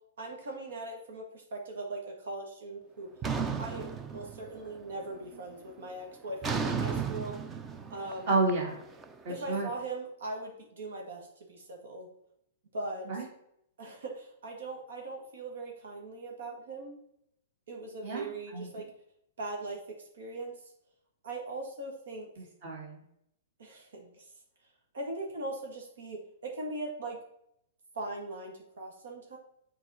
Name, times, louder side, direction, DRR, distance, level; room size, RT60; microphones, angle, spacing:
voice 1, 0.2-3.1 3.6-7.4 7.9-8.3 9.3-12.1 12.7-13.1 13.8-17.0 17.7-18.9 19.4-19.8 20.1-20.6 21.2-22.3 23.6-24.3 24.9-27.2 27.9-29.4, right 2 dB, 80° right, 1 dB, 1.9 m, -40 dB
sound 1, 3.2-4.8 5.1-5.5 6.4-9.5, right 5 dB, 15° right, 0.4 m, -34 dB
voice 2, 8.3-8.8 9.2-9.7 13.1-13.3 18.0-18.8 22.4-23.0, right 3 dB, 40° right, -1 dB, 2.3 m, -31 dB
7.3 x 4.7 x 4.1 m, 0.76 s
hypercardioid pair, 170°, 0 cm